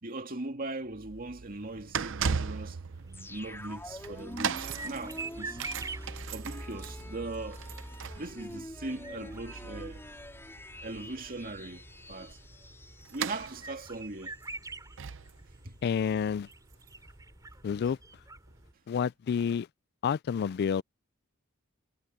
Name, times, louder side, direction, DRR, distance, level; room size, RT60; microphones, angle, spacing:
voice 1, 0.0-2.8 3.3-5.6 6.3-7.7 8.1-10.0 10.8-12.4 13.1-14.3 15.6-15.8, right 2 dB, 45° right, 2.3 m, -39 dB
sound 1, 0.9-17.8 18.5-18.6, right 6 dB, 60° right, 0.7 m, -39 dB
sound 2, 2.9-18.7, right 3 dB, 15° right, 5.1 m, -47 dB
sound 3, 3.1-13.9 14.3-14.4, left 1 dB, 10° left, 3.7 m, -45 dB
voice 2, 15.8-16.5 17.6-18.0 18.9-19.7 20.0-20.8, left 7 dB, 50° left, 0.3 m, -29 dB
head